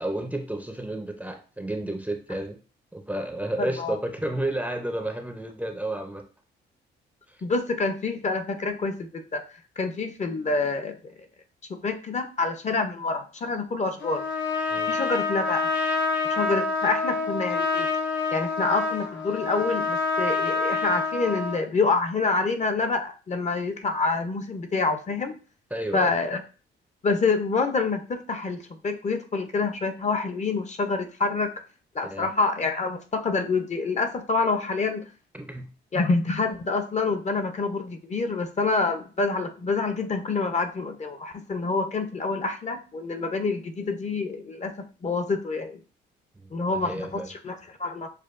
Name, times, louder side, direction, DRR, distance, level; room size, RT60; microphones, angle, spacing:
voice 1, 0.0-2.6 2.9-6.3 7.3-7.4 14.7-15.0 25.7-26.1 32.0-32.3 35.3-35.7 46.4-47.3, right 1 dB, 5° right, 4 dB, 0.5 m, -31 dB
voice 2, 3.6-4.0 7.4-11.1 11.7-14.2 14.9-15.7 16.3-17.9 18.3-25.4 25.9-26.4 27.0-31.5 31.9-35.1 35.9-44.7 45.0-45.8 46.5-48.1, left 3 dB, 35° left, 7 dB, 0.6 m, -27 dB
Trumpet, 14.0-21.7, left 4 dB, 75° left, 0.9 m, -27 dB
6.6 x 2.3 x 2.5 m, 0.36 s
cardioid pair, 90°, 20 cm